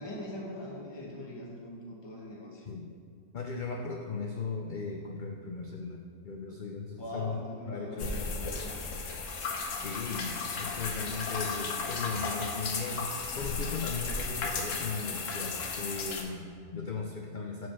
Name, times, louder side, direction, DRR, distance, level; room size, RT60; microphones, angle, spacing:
voice 1, 0.0-2.7 7.0-8.8, left 1 dB, 20° left, -3 dB, 1.2 m, -41 dB
voice 2, 3.3-7.4 7.7-8.2 9.7-17.7, left 4 dB, 55° left, 1 dB, 0.5 m, -37 dB
sound 1, 8.0-16.2, left 4 dB, 70° left, 1.1 m, -35 dB
7.4 x 5.0 x 5.9 m, 2.1 s
omnidirectional pair, 1.4 m